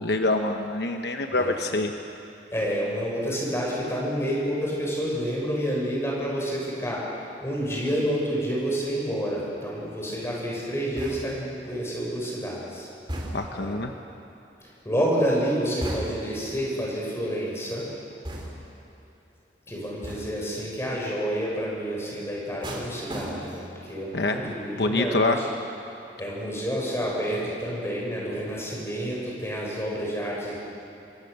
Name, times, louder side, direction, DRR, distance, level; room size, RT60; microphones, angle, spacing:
voice 1, 0.0-1.9 13.3-13.9 24.1-24.5 24.8-25.4, left 2 dB, 65° left, 4 dB, 1.1 m, -25 dB
voice 2, 2.5-7.0 7.4-12.9 13.5-13.7 14.8-17.8 19.7-25.5 26.2-30.6, equal, 15° left, -4 dB, 6.7 m, -29 dB
sound 1, 11.0-11.5 13.1-13.7 15.8-16.4 18.2-18.8 20.0-20.5 22.6-23.8 24.1-24.5, right 1 dB, 25° right, 3.6 m, -36 dB
26.5 x 23.0 x 6.7 m, 3.0 s
head